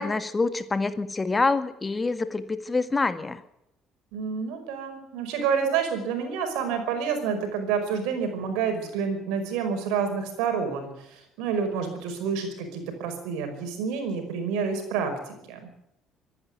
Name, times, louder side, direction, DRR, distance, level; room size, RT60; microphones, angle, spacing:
voice 1, 0.0-3.4, left 3 dB, 25° left, 11 dB, 1.8 m, -26 dB
voice 2, 4.1-15.7, right 6 dB, 70° right, 6 dB, 5.3 m, -28 dB
25.0 x 11.0 x 9.4 m, 0.81 s
figure-of-eight pair, 50°, 0 cm